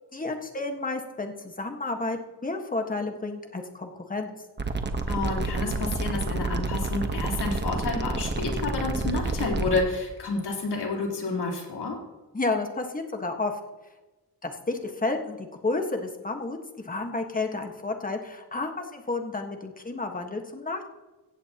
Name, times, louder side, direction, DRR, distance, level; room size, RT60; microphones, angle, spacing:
voice 1, 0.1-4.4 12.3-13.5 14.4-16.6 16.8-20.9, left 3 dB, 20° left, 4 dB, 1.5 m, -31 dB
sound 1, 4.6-9.8, right 3 dB, 25° right, 1.2 m, -29 dB
voice 2, 5.1-12.0, left 3 dB, 75° left, -1 dB, 3.9 m, -29 dB
16.5 x 15.5 x 3.0 m, 1.1 s
wide cardioid pair, 120°, 40 cm